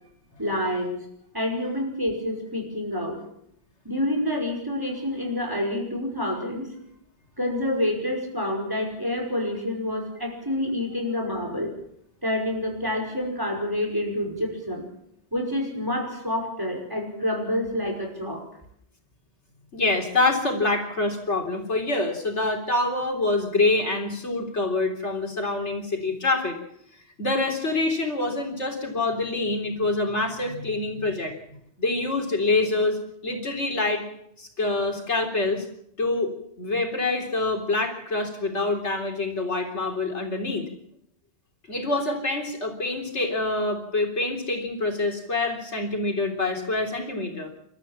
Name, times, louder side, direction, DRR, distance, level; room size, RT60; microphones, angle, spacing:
voice 1, 0.4-1.0 1.3-3.2 3.9-6.7 7.4-11.7 12.2-14.9 15.3-18.5, left 1 dB, 20° right, 2 dB, 5.3 m, -28 dB
voice 2, 19.7-26.6 27.2-34.1 34.4-35.7 36.0-36.3 36.6-40.6 41.7-47.5, left 2 dB, 85° left, 3 dB, 3.9 m, -26 dB
29.0 x 13.5 x 7.3 m, 0.73 s
omnidirectional pair, 1.1 m